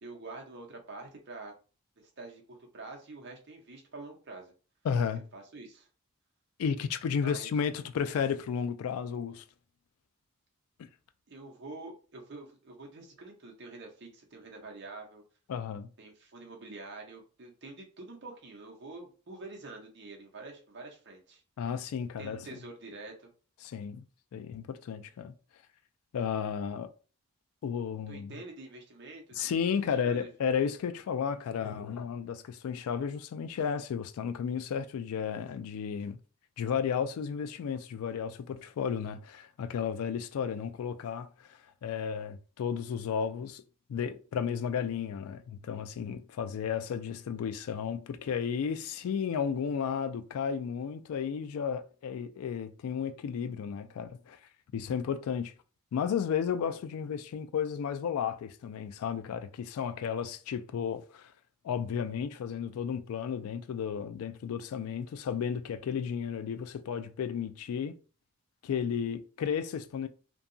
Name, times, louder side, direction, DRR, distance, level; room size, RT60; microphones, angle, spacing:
voice 1, 0.0-1.5 2.0-4.5 5.3-5.9 7.2-7.5 11.3-15.2 16.0-21.4 22.2-23.3 28.1-29.6 30.1-30.3, right 3 dB, 55° right, 0.7 m, -46 dB
voice 2, 4.8-5.3 6.6-9.4 15.5-15.9 21.6-22.5 23.6-24.0 24.3-25.3 26.1-26.9 27.6-28.4 29.3-36.2 36.6-43.6 43.9-54.4 54.7-55.5 55.9-61.3 61.6-67.9 68.6-70.1, left 7 dB, 80° left, 0.3 m, -33 dB
2.7 x 2.2 x 2.6 m
head